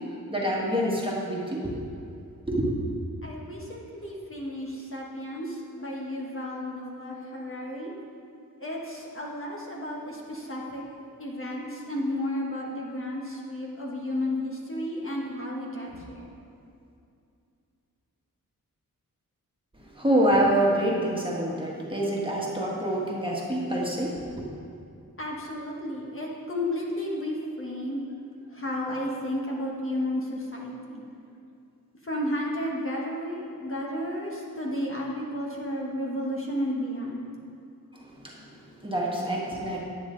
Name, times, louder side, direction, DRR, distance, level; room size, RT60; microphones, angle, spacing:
voice 1, 0.3-1.7 2.5-2.7 19.8-24.4 37.9-39.8, right 1 dB, 15° right, -4 dB, 1.7 m, -26 dB
voice 2, 3.2-7.9 8.6-10.9 11.2-16.2 25.2-28.1 28.5-31.0 32.0-37.2, left 1 dB, 35° left, -3 dB, 1.4 m, -32 dB
9.9 x 9.2 x 3.9 m, 2.5 s
wide cardioid pair, 95°, 35 cm